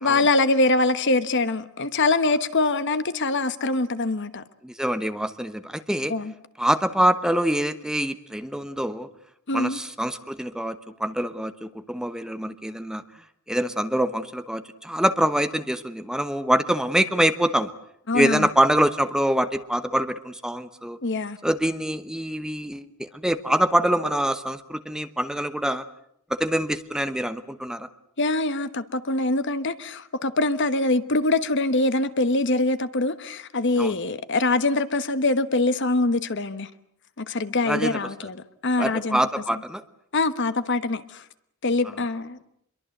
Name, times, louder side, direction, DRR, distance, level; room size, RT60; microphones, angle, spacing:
voice 1, 0.0-4.4 6.1-6.3 9.5-9.8 18.1-18.5 21.0-21.4 28.2-36.7 37.2-38.4 38.6-39.2 40.1-41.2 41.6-42.5, left 2 dB, 55° left, 1.3 m, -23 dB
voice 2, 4.6-6.1 6.6-9.1 9.5-13.0 13.5-17.7 18.1-21.0 21.4-25.9 26.3-27.9 33.8-33.9 37.7-38.0 38.8-39.8, right 1 dB, 5° right, 1.0 m, -25 dB
26.5 x 23.0 x 7.9 m
head